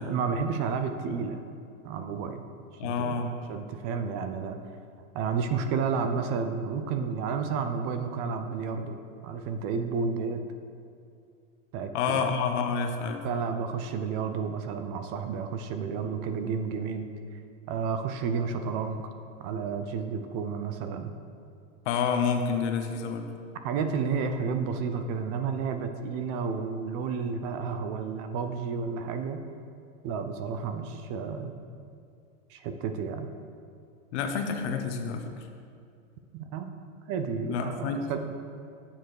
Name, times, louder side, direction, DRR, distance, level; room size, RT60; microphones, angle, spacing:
voice 1, 0.0-1.4 1.8-2.4 2.8-3.2 3.5-4.6 5.1-9.0 9.2-10.4 11.7-12.2 13.0-17.1 17.7-19.0 19.4-21.1 23.6-29.4 30.0-31.5 32.5-33.3 36.3-36.7 37.1-38.3, right 5 dB, 40° right, 7 dB, 0.7 m, -31 dB
voice 2, 2.8-3.3 11.9-13.2 21.8-23.3 34.1-35.3 37.4-38.1, left 6 dB, 60° left, 5 dB, 1.1 m, -28 dB
8.7 x 7.0 x 4.8 m, 2.5 s
supercardioid pair, 130°, 39 cm